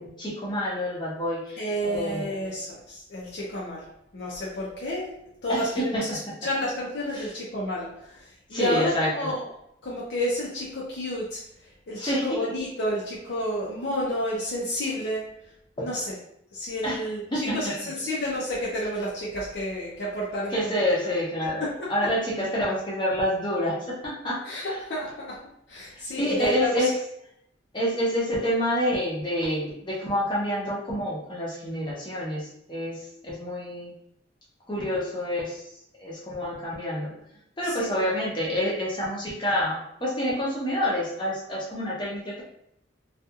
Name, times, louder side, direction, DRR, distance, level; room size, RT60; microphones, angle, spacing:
voice 1, 0.0-2.3 5.5-5.7 5.9-6.0 7.1-7.3 8.5-9.1 12.0-12.4 15.8-15.9 16.8-17.0 17.3-17.6 20.5-21.6 21.9-24.4 25.9-26.9 27.7-33.9 34.7-35.7 36.0-37.1 37.6-42.4, equal, 25° left, -5 dB, 0.7 m, -28 dB
voice 2, 1.6-9.4 9.8-15.3 15.8-16.1 16.5-20.7 21.6-21.7 24.4-26.9 37.7-37.8, equal, 65° left, -6 dB, 0.6 m, -31 dB
2.7 x 2.4 x 2.4 m, 0.75 s
head